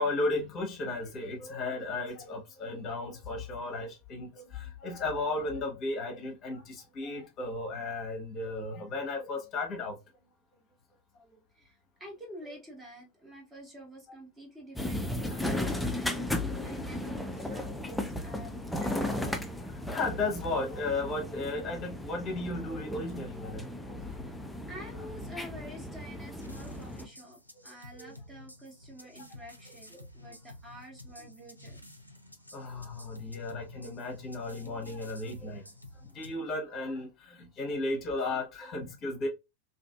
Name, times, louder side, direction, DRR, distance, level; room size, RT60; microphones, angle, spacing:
voice 1, 0.0-10.0 15.3-15.5 19.7-24.3 27.9-28.1 32.5-35.6 36.1-39.3, left 2 dB, 30° left, 0.8 m, -35 dB
voice 2, 11.5-19.4 24.1-24.3 24.7-31.9, equal, 15° right, 0.9 m, -49 dB
sound 1, 14.8-27.1, left 1 dB, 5° left, 0.3 m, -35 dB
sound 2, 26.4-36.3, left 1 dB, 90° left, 0.4 m, -51 dB
2.6 x 2.5 x 2.2 m
figure-of-eight pair, 90°, 0 cm